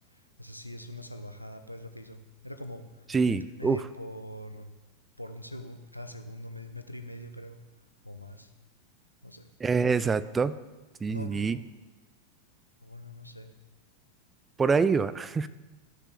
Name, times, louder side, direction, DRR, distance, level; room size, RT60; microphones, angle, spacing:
voice 1, 0.1-2.2 2.4-4.7 5.2-7.6 8.0-8.5 9.2-9.5 11.1-11.6 12.8-13.5, equal, 90° left, 7 dB, 0.7 m, -42 dB
voice 2, 3.1-3.8 9.6-10.6 11.0-11.6 14.6-15.5, right 5 dB, 15° right, 15 dB, 0.4 m, -25 dB
14.5 x 6.6 x 3.5 m, 1.2 s
figure-of-eight pair, 90°, 0 cm